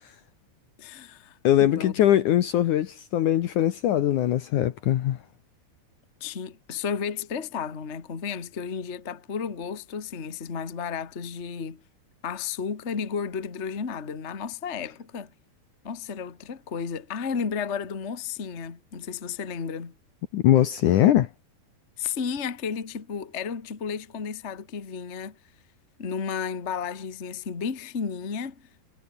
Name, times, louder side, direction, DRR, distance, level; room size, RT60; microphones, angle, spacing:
voice 1, 0.8-2.0 6.2-11.8 12.2-15.3 15.8-19.9 22.0-25.4 26.0-28.7, left 6 dB, 30° left, 1.4 m, -33 dB
voice 2, 1.4-5.2 20.3-21.3, left 12 dB, 65° left, 2.2 m, -21 dB
omnidirectional pair, 4.5 m